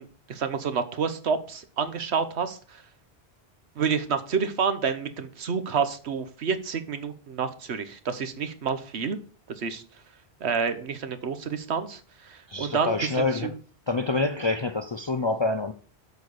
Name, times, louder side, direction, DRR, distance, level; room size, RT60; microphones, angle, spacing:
voice 1, 0.0-2.8 3.8-9.2 9.6-9.8 10.4-13.5, right 6 dB, 75° right, 1.2 m, -29 dB
voice 2, 12.5-13.5 13.9-15.7, left 2 dB, 40° left, 0.4 m, -26 dB
8.2 x 4.7 x 6.6 m
omnidirectional pair, 1.1 m